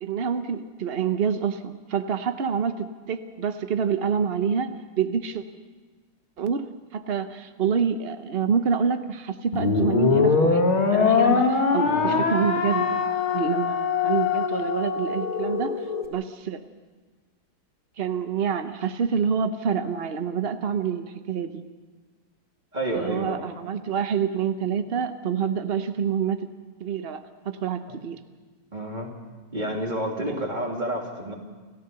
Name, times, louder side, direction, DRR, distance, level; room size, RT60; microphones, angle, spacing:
voice 1, 0.0-5.4 6.4-10.6 10.9-16.6 18.0-21.6 22.9-26.5 26.8-28.2 30.2-30.3, right 7 dB, 80° right, 9 dB, 0.5 m, -27 dB
sound 1, 9.5-16.0, left 5 dB, 80° left, 2.9 m, -22 dB
voice 2, 11.8-12.2 22.7-23.5 27.9-28.0 28.7-29.1 29.5-31.3, right 1 dB, 20° right, 0 dB, 2.9 m, -30 dB
29.0 x 14.5 x 6.9 m, 1.4 s
omnidirectional pair, 2.3 m